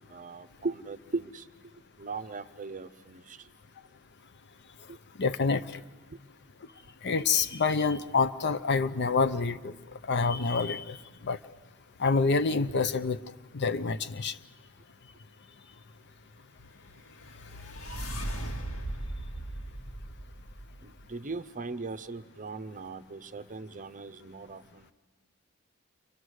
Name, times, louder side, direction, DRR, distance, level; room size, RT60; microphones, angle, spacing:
voice 1, 0.1-1.4 2.0-3.4 20.8-24.9, right 3 dB, 35° right, 13 dB, 0.6 m, -38 dB
voice 2, 5.2-5.7 7.0-9.7 10.1-11.0 11.2-11.4 12.0-13.2 13.5-14.3, left 4 dB, 50° left, 12 dB, 0.7 m, -27 dB
sound 1, 16.9-21.0, right 1 dB, 70° left, 2.2 m, -38 dB
29.5 x 24.5 x 6.4 m, 1.4 s
head